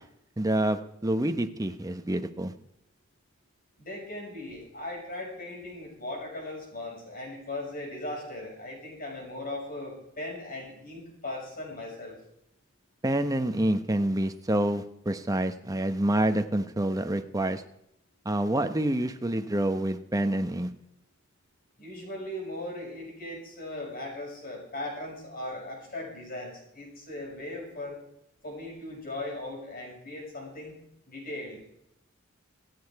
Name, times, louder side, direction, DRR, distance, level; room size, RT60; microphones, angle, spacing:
voice 1, 0.4-2.5 13.0-17.6 18.2-20.7, right 1 dB, 15° right, 8 dB, 0.9 m, -27 dB
voice 2, 3.8-12.2 21.8-28.0 28.4-30.8 31.1-31.6, left 1 dB, 45° left, -1 dB, 6.4 m, -38 dB
26.0 x 8.8 x 4.7 m, 0.78 s
head